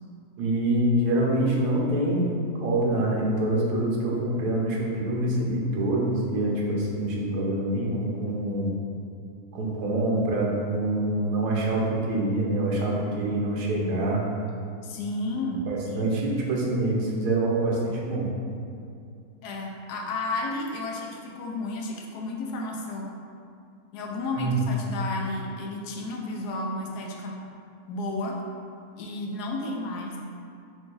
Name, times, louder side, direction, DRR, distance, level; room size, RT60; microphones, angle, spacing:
voice 1, 0.4-8.7 9.5-14.2 15.7-18.3 24.4-24.6, right 1 dB, 90° right, -3 dB, 1.3 m, -25 dB
voice 2, 14.8-16.1 19.4-23.1 23.9-27.3 27.9-28.3 29.0-30.1, left 2 dB, 85° left, 0 dB, 1.1 m, -32 dB
4.8 x 2.4 x 3.8 m, 2.5 s
omnidirectional pair, 1.7 m